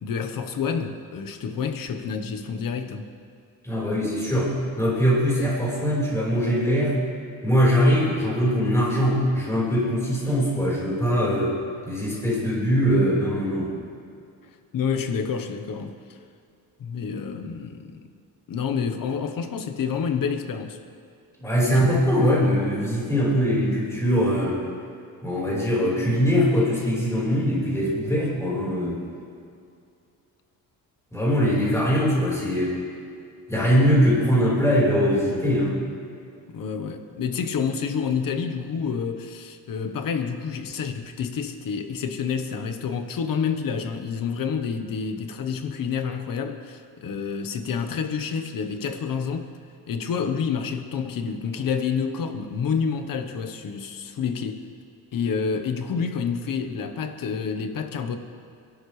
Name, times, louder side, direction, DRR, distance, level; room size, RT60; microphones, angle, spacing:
voice 1, 0.0-3.1 14.7-16.0 16.8-18.0 18.5-20.8 21.6-21.9 31.5-31.6 36.5-49.5 49.9-54.6 55.1-58.2, left 6 dB, 60° left, 7 dB, 1.1 m, -28 dB
voice 2, 3.6-4.5 4.8-6.9 7.4-11.5 11.8-13.7 21.4-24.6 25.2-29.0 31.1-32.7 33.5-35.8, equal, 5° left, -6 dB, 4.3 m, -22 dB
29.0 x 11.5 x 3.3 m, 2.4 s
wide cardioid pair, 180°, 38 cm